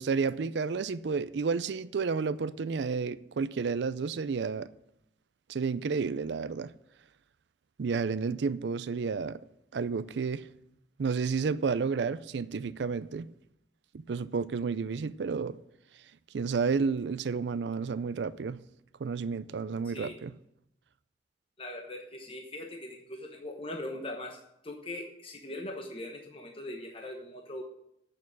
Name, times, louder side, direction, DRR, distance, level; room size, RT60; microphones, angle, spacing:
voice 1, 0.0-4.7 5.5-6.7 7.8-9.4 9.7-10.5 11.0-13.3 13.9-15.6 16.3-18.6 19.0-20.3, right 5 dB, 70° right, 0.4 m, -31 dB
voice 2, 19.8-20.2 21.6-27.6, left 1 dB, 30° left, 1.0 m, -41 dB
8.4 x 6.8 x 8.5 m
head